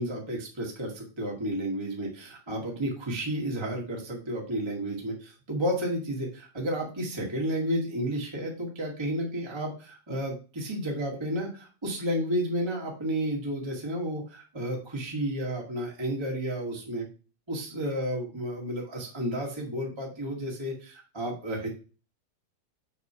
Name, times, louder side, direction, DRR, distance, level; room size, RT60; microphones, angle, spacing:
voice 1, 0.0-17.1 17.5-21.7, equal, 30° right, -1 dB, 0.4 m, -32 dB
7.0 x 3.2 x 5.5 m, 0.35 s
omnidirectional pair, 4.2 m